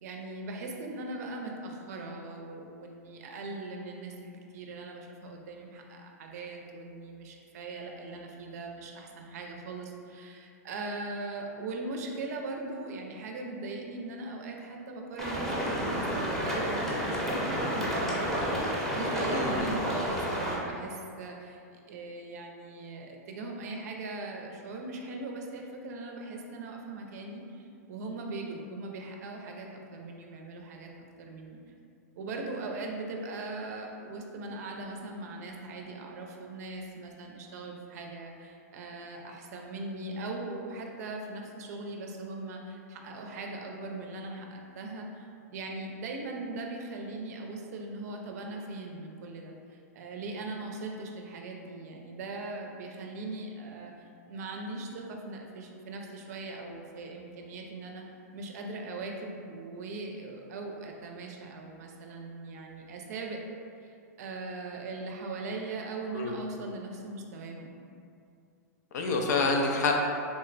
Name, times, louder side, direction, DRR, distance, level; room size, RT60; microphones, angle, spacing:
voice 1, 0.0-18.6 18.9-31.6 32.1-58.0 58.3-63.4 63.8-67.8, right 2 dB, 65° right, 2 dB, 0.5 m, -40 dB
sound 1, 15.2-20.6, equal, 5° left, 0.7 m, -30 dB
voice 2, 19.3-19.7 66.1-66.4 68.9-69.9, left 3 dB, 75° left, 2 dB, 0.5 m, -27 dB
3.5 x 2.1 x 3.9 m, 2.5 s
hypercardioid pair, 125°, 9 cm